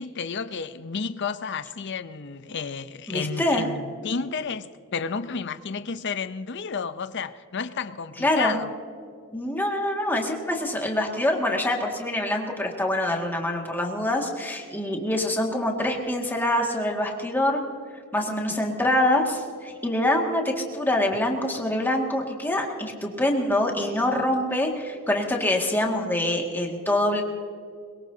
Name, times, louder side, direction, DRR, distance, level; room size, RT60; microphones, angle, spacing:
voice 1, 0.0-8.7, left 5 dB, 55° left, 0.7 m, -31 dB
voice 2, 3.1-3.6 8.2-8.6 9.3-17.6 18.1-27.2, left 1 dB, 10° left, 2.0 m, -25 dB
22.5 x 21.5 x 2.8 m
head